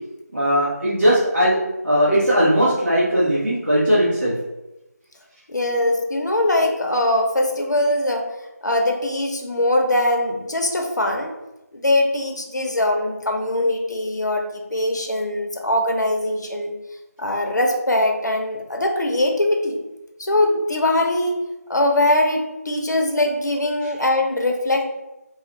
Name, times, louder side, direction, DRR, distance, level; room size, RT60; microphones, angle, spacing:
voice 1, 0.3-1.6 1.8-4.3 23.8-23.9, equal, 45° right, -10 dB, 0.9 m, -18 dB
voice 2, 5.5-8.3 8.6-11.3 11.7-14.5 14.7-16.7 17.2-19.8 20.2-21.4 21.7-24.9, left 1 dB, 90° left, 3 dB, 0.7 m, -21 dB
3.2 x 2.4 x 2.9 m, 0.96 s
figure-of-eight pair, 180°, 9 cm